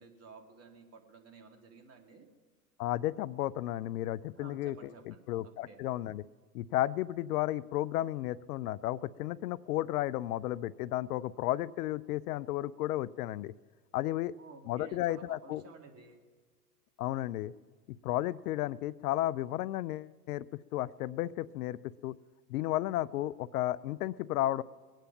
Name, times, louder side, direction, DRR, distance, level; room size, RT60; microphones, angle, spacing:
voice 1, 0.0-2.3 4.3-5.8 14.4-16.2, right 4 dB, 30° right, 4 dB, 2.3 m, -53 dB
voice 2, 2.8-6.2 6.5-13.5 13.9-14.3 14.7-15.6 17.0-17.5 18.0-20.5 20.7-22.2 22.5-24.6, left 14 dB, 70° left, 20 dB, 0.5 m, -33 dB
21.5 x 9.0 x 5.8 m, 1.5 s
hypercardioid pair, 100°, 48 cm